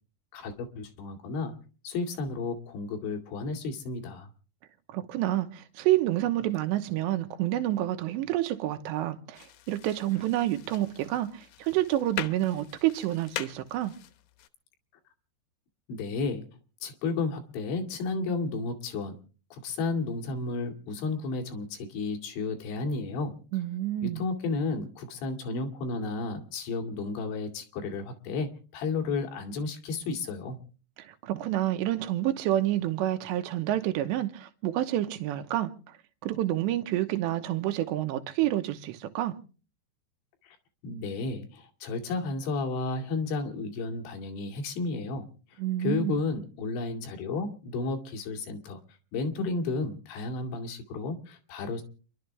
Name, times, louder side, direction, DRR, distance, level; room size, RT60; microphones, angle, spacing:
voice 1, 0.3-1.5 1.8-4.3 15.9-16.5 16.8-19.2 19.5-23.4 24.0-30.6 40.4-40.6 40.8-51.8, left 3 dB, 90° left, 4.6 m, -32 dB
voice 2, 4.9-13.9 23.5-24.2 31.0-35.7 36.2-39.3 45.6-46.2, right 14 dB, 85° right, 3.2 m, -28 dB
sound 1, 9.3-14.5, left 12 dB, 70° left, 2.4 m, -42 dB
28.5 x 12.0 x 3.4 m
omnidirectional pair, 5.1 m